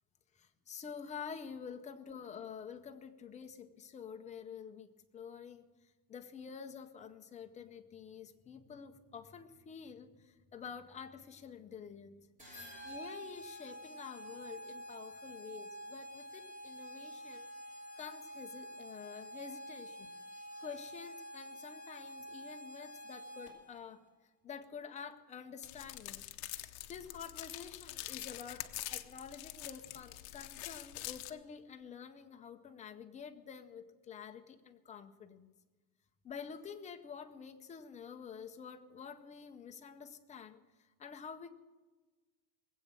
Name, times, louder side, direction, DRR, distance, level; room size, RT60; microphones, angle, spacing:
voice 1, 0.4-4.9 5.1-5.6 6.1-12.2 12.5-17.5 18.0-20.1 20.6-24.0 24.4-35.5 36.2-40.6 41.0-41.5, left 6 dB, 15° left, 6 dB, 0.6 m, -48 dB
sound 1, 12.4-23.8, equal, 15° right, 3.5 m, -48 dB
sound 2, 25.6-31.3, left 16 dB, 45° left, 0.9 m, -45 dB
20.0 x 8.2 x 7.3 m, 1.3 s
supercardioid pair, 150°, 50 cm